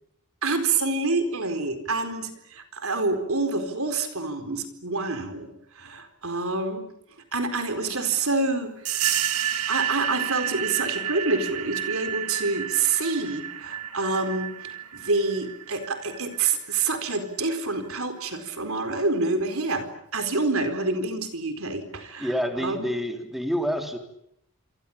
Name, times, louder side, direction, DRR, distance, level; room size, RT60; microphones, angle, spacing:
voice 1, 0.4-5.5 5.7-6.8 7.3-9.2 9.7-22.9, right 3 dB, 65° right, 8 dB, 4.4 m, -27 dB
sound 1, 8.9-17.1, right 10 dB, 85° right, 1.9 m, -31 dB
voice 2, 22.2-24.0, equal, ahead, 4 dB, 3.4 m, -28 dB
27.5 x 25.0 x 8.8 m, 0.76 s
head